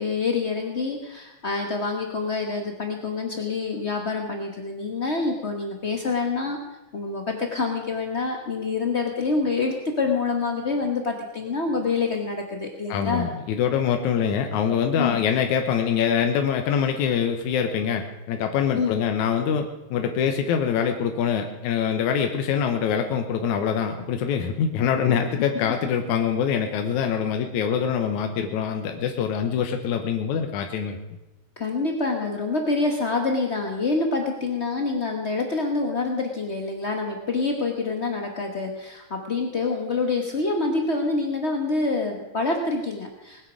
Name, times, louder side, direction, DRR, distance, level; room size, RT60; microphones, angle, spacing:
voice 1, 0.0-6.6 6.9-13.3 15.0-15.2 18.8-19.0 31.6-43.4, left 3 dB, 55° left, 2 dB, 0.7 m, -26 dB
voice 2, 12.9-31.0, left 7 dB, 80° left, 5 dB, 2.4 m, -24 dB
20.0 x 9.5 x 6.2 m, 1.0 s
omnidirectional pair, 3.4 m